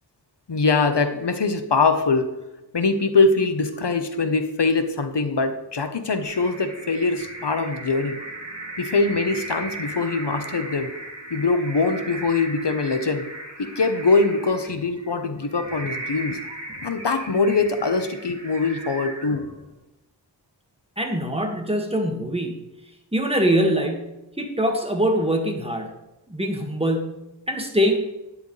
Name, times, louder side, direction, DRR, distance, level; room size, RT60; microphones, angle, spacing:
voice 1, 0.5-2.3 2.7-8.2 8.8-10.9 11.3-13.3 13.6-16.4 16.8-19.4, left 3 dB, 70° left, 8 dB, 1.1 m, -22 dB
sound 1, 6.2-19.7, right 2 dB, 35° right, 3.0 m, -37 dB
voice 2, 21.0-22.6 23.1-24.1 24.4-25.9 26.3-28.0, equal, 15° right, 2 dB, 2.0 m, -23 dB
12.5 x 10.0 x 3.3 m, 0.94 s
wide cardioid pair, 70°, 43 cm